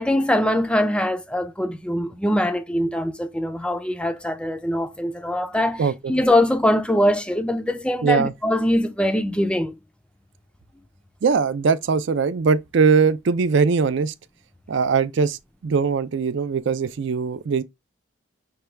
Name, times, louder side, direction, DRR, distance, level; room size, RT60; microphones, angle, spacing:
voice 1, 0.0-9.7, left 1 dB, 5° left, 0.4 m, -22 dB
voice 2, 8.0-8.3 11.2-14.1 14.7-15.4 15.6-17.6, right 5 dB, 60° right, 0.4 m, -20 dB
5.7 x 2.2 x 3.2 m
head